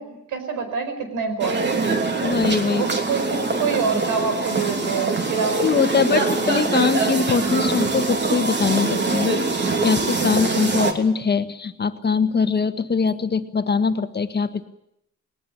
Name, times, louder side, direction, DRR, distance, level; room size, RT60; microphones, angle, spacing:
voice 1, 0.0-1.9 2.7-5.6 5.9-6.3, right 5 dB, 85° right, 7 dB, 5.3 m, -26 dB
sound 1, 1.4-10.9, right 3 dB, 35° right, 3.1 m, -23 dB
voice 2, 2.2-2.8 5.6-14.6, left 5 dB, 35° left, 9 dB, 1.7 m, -22 dB
20.0 x 19.5 x 8.9 m, 0.79 s
cardioid pair, 90°, 30 cm